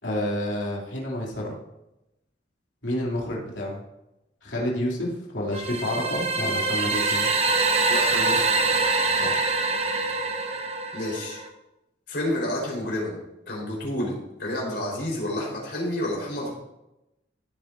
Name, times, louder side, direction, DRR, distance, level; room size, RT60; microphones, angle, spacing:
voice 1, 0.0-1.5 2.8-3.8 4.4-7.3 9.1-9.4, left 1 dB, 80° left, -4 dB, 3.1 m, -29 dB
sound 1, 5.5-11.5, right 3 dB, 35° right, 0.9 m, -24 dB
voice 2, 7.9-8.5 10.9-11.4 12.1-13.2 13.5-14.1 14.4-16.5, left 1 dB, 60° left, -3 dB, 4.5 m, -29 dB
15.5 x 8.9 x 2.7 m, 0.92 s
head